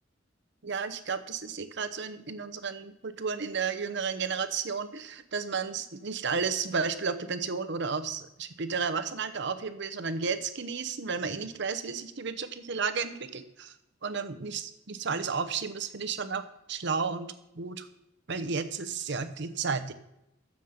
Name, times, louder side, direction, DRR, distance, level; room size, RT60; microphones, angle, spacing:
voice 1, 0.6-13.7 14.0-16.4 16.7-17.9 18.3-19.9, right 5 dB, 60° right, 11 dB, 0.8 m, -32 dB
9.4 x 7.4 x 6.5 m, 0.84 s
head